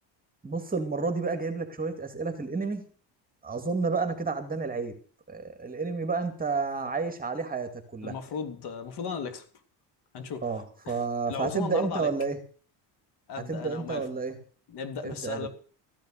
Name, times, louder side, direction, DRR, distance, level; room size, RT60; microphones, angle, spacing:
voice 1, 0.4-2.8 3.4-4.9 5.3-8.1 10.4-12.4 13.5-14.4 15.0-15.5, right 4 dB, 20° right, 7 dB, 2.3 m, -30 dB
voice 2, 8.0-9.4 10.1-10.5 10.8-12.1 13.3-14.1 14.7-15.5, left 6 dB, 70° left, 8 dB, 3.3 m, -36 dB
15.0 x 10.5 x 6.5 m, 0.43 s
cardioid pair, 120°, 41 cm